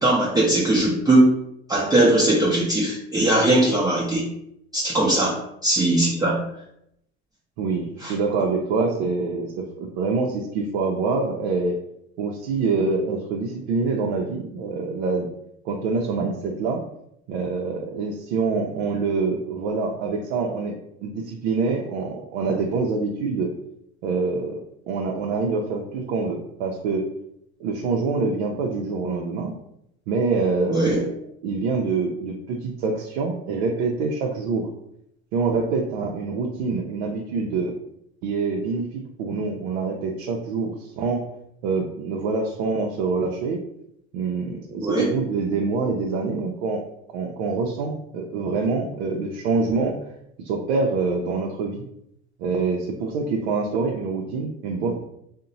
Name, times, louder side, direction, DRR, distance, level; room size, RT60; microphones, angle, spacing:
voice 1, 0.0-1.3 1.7-4.3 4.7-6.4 8.0-8.1 30.7-31.0 44.8-45.1, right 1 dB, 10° right, -5 dB, 0.5 m, -20 dB
voice 2, 7.6-11.7 12.2-15.3 15.7-16.8 17.3-20.7 21.0-23.5 24.0-24.6 24.9-27.1 27.6-29.5 30.1-31.1 31.4-34.7 35.3-37.8 38.2-41.2 41.6-43.6 44.1-46.8 47.1-50.0 50.4-51.8 52.4-54.9, right 4 dB, 75° right, 0 dB, 0.5 m, -25 dB
2.8 x 2.1 x 2.6 m, 0.76 s
supercardioid pair, 95°, 33 cm